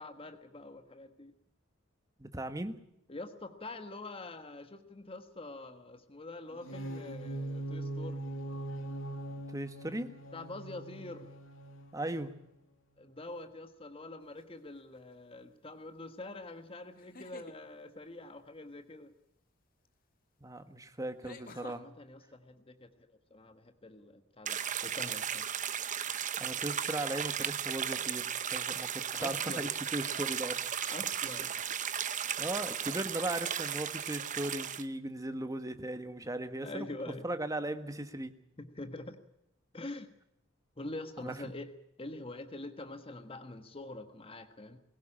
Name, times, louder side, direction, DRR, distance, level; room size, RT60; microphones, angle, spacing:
voice 1, 0.0-1.3 3.1-8.2 10.3-11.3 13.0-19.1 21.7-25.5 29.1-29.7 30.9-31.5 33.1-33.2 36.6-37.2 38.6-39.2 39.7-40.1 40.8-41.7 42.0-44.8, left 2 dB, 30° left, 8 dB, 1.4 m, -45 dB
voice 2, 2.2-2.7 9.5-10.1 11.9-12.3 20.4-21.8 26.4-30.6 32.4-36.9 37.2-38.3 41.2-41.3, right 1 dB, 15° right, 9 dB, 1.5 m, -37 dB
sound 1, 6.5-12.5, right 1 dB, 85° left, 2.3 m, -41 dB
sound 2, 14.4-14.8 16.9-17.6 19.8-19.9 21.2-21.8, left 3 dB, 45° left, 1.8 m, -50 dB
sound 3, 24.5-34.8, right 9 dB, 40° right, 0.9 m, -35 dB
21.0 x 17.0 x 8.8 m, 0.80 s
head